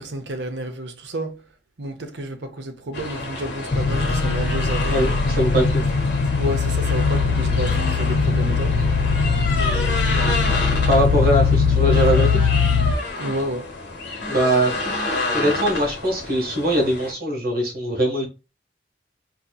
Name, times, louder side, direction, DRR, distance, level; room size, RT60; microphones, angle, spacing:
voice 1, 0.0-1.4 1.8-5.0 6.4-8.8 13.2-13.7, right 1 dB, 85° right, 0.7 m, -30 dB
sound 1, 2.9-17.1, left 3 dB, 80° left, 1.1 m, -29 dB
sound 2, 3.7-12.9, left 4 dB, 40° left, 0.3 m, -20 dB
voice 2, 4.9-5.9 9.6-10.0 10.9-12.4 14.3-14.8 15.3-18.3, equal, 55° right, 1.4 m, -22 dB
4.1 x 2.9 x 2.3 m
head